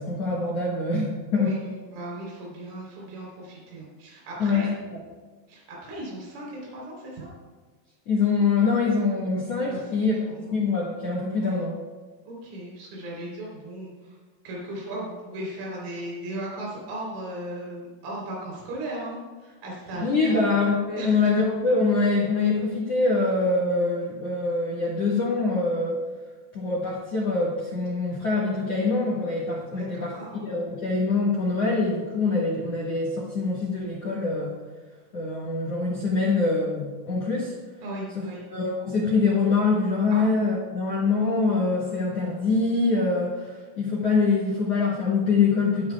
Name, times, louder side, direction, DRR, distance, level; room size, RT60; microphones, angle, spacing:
voice 1, 0.0-1.6 4.4-4.7 8.1-10.1 10.5-11.8 20.0-26.0 26.5-34.6 35.1-37.5 38.1-38.2 38.5-45.9, left 3 dB, 70° left, -5 dB, 1.4 m, -24 dB
voice 2, 1.4-4.7 5.5-7.3 9.7-9.9 10.3-10.5 11.4-11.6 12.3-14.2 14.4-20.6 21.0-21.1 29.7-30.5 37.8-38.4 40.1-40.3, right 1 dB, 85° right, -3 dB, 6.2 m, -37 dB
19.5 x 10.5 x 2.3 m, 1.4 s
omnidirectional pair, 5.6 m